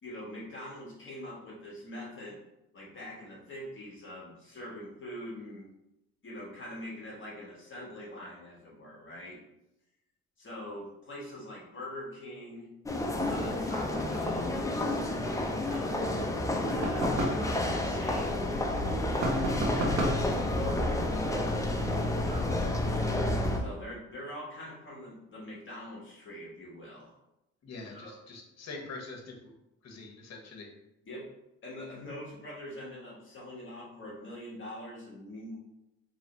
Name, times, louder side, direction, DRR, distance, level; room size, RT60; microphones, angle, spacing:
voice 1, 0.0-2.4 2.7-5.7 6.2-9.4 10.4-12.7 13.3-16.2 16.6-18.5 19.6-21.0 22.2-22.7 23.5-27.1 27.9-28.1 31.0-31.3 31.6-35.5, left 1 dB, 40° left, -5 dB, 1.2 m, -44 dB
sound 1, 12.9-23.6, left 1 dB, 10° left, 0.5 m, -30 dB
sound 2, 16.8-17.5 19.2-20.3, right 1 dB, 60° right, 1.1 m, -30 dB
voice 2, 27.6-29.5 29.8-30.7, left 3 dB, 60° left, 1 dB, 1.1 m, -44 dB
3.1 x 2.9 x 4.0 m, 0.91 s
cardioid pair, 90°, 30 cm